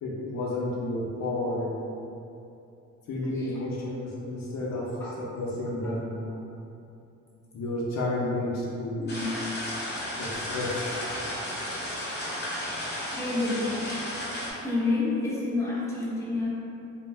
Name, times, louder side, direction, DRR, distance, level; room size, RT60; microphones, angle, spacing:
voice 1, 0.0-1.7 3.1-4.9 5.4-6.2 7.5-9.2 10.2-10.8, left 2 dB, 60° left, -5 dB, 0.6 m, -31 dB
voice 2, 3.2-3.7 5.0-5.1 5.8-5.9 9.0-9.3 13.1-13.7 14.6-16.6, left 3 dB, 10° left, -8 dB, 0.6 m, -29 dB
sound 1, 9.1-14.5, left 1 dB, 35° left, 0.8 m, -33 dB
2.4 x 2.1 x 3.2 m, 2.7 s
cardioid pair, 90°, 30 cm